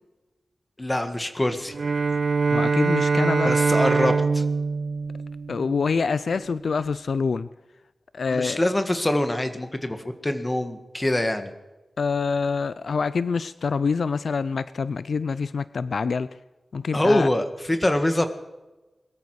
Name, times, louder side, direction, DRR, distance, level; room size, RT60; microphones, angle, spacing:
voice 1, 0.8-1.7 3.4-4.4 8.3-11.5 16.9-18.3, left 1 dB, 20° left, 7 dB, 1.6 m, -24 dB
Bowed string instrument, 1.7-6.1, right 4 dB, 70° right, 1.1 m, -23 dB
voice 2, 2.5-3.5 5.5-7.5 8.1-8.6 12.0-16.3 16.7-17.3, left 5 dB, 75° left, 15 dB, 0.5 m, -26 dB
22.0 x 13.5 x 4.8 m, 1.1 s
wide cardioid pair, 95°, 0 cm